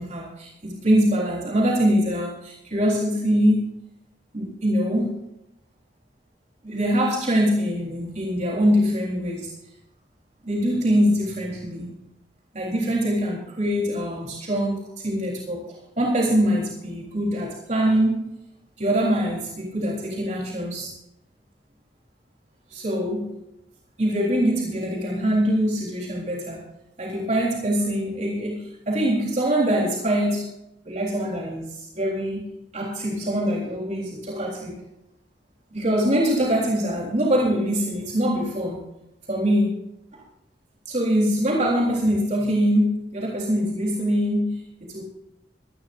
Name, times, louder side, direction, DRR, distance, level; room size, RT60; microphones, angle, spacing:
voice 1, 0.0-3.7 4.3-5.2 6.6-9.5 10.4-12.0 12.5-18.3 18.8-20.9 22.7-23.3 24.0-26.7 27.0-30.5 30.9-34.8 35.7-38.9 39.3-39.8 40.1-40.2 40.9-45.0, equal, 40° right, -3 dB, 3.7 m, -23 dB
24.5 x 11.5 x 2.6 m, 0.84 s
head